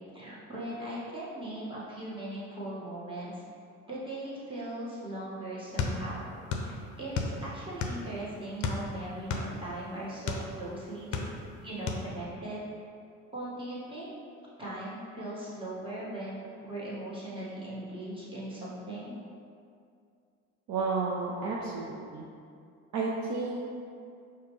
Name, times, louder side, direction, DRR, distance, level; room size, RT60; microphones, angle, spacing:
voice 1, 0.1-3.4 3.8-6.3 6.6-11.2 11.6-12.7 13.3-14.1 14.6-19.2, right 1 dB, 15° right, -9 dB, 1.4 m, -39 dB
sound 1, 5.8-6.7 7.0-8.1 8.6-10.5 10.9-11.6 11.9-12.1, left 5 dB, 50° left, 0.6 m, -32 dB
voice 2, 20.7-22.2 22.9-23.6, right 4 dB, 50° right, -3 dB, 0.5 m, -32 dB
4.8 x 2.2 x 3.0 m, 2.4 s
hypercardioid pair, 60°, 39 cm